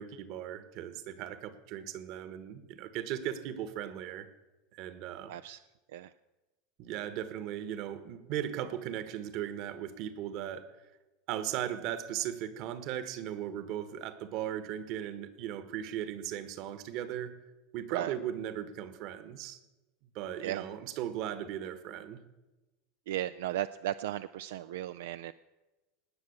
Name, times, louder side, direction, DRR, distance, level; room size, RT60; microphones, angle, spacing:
voice 1, 0.0-4.3 4.7-5.3 6.8-10.7 11.3-17.4 17.7-19.6 20.1-22.2, right 11 dB, 55° right, 13 dB, 1.3 m, -37 dB
voice 2, 5.3-5.6 5.9-6.1 17.9-18.1 20.4-20.7 23.1-25.3, right 12 dB, 85° right, 12 dB, 0.4 m, -35 dB
18.5 x 6.2 x 8.5 m, 1.1 s
supercardioid pair, 135°, 0 cm